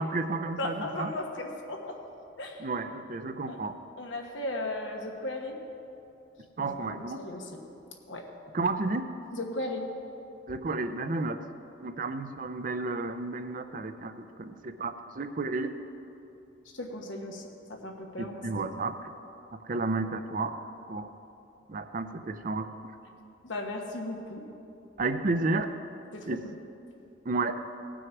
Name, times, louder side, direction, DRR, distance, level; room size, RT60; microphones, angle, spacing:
voice 1, 0.0-1.1 2.6-3.8 6.6-7.2 8.5-9.1 10.5-11.4 11.8-15.7 18.2-19.1 19.6-20.6 20.9-21.1 21.7-22.9 25.0-25.7 26.3-26.4 27.2-27.6, right 3 dB, 45° right, 9 dB, 0.6 m, -32 dB
voice 2, 0.6-2.0 2.4-2.7 3.5-3.6 4.0-5.6 6.6-7.5 8.1-8.2 9.3-9.9 16.7-18.7 23.4-24.4 26.1-26.3, left 2 dB, 90° left, 1 dB, 1.3 m, -36 dB
18.0 x 6.2 x 4.7 m, 2.8 s
head